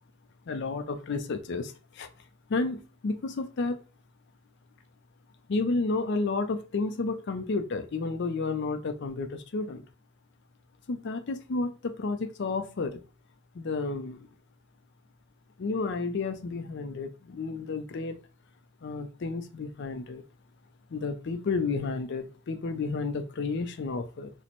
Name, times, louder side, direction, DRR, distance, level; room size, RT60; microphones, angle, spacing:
voice 1, 0.5-2.1 2.5-3.8 5.5-9.9 10.9-13.0 13.5-14.3 15.6-18.2 18.8-20.2 20.9-24.3, left 3 dB, 55° left, 0.4 m, -31 dB
3.0 x 2.1 x 4.0 m
head